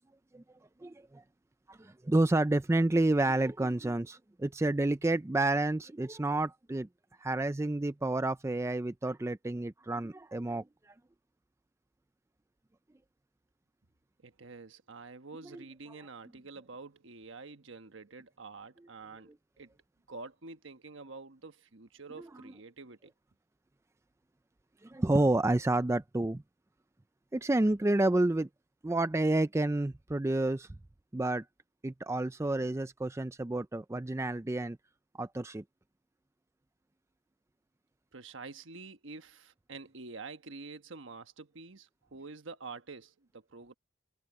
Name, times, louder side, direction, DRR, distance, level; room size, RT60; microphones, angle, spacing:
voice 1, 0.8-1.2 1.7-6.9 7.2-10.6 22.2-22.5 24.8-26.4 27.3-28.5 28.8-30.7 31.1-31.4 31.8-34.8 35.2-35.6, right 2 dB, 15° right, 0.4 m, -29 dB
voice 2, 14.2-19.7 20.1-23.1 38.1-43.7, right 3 dB, 65° right, 1.3 m, -47 dB
head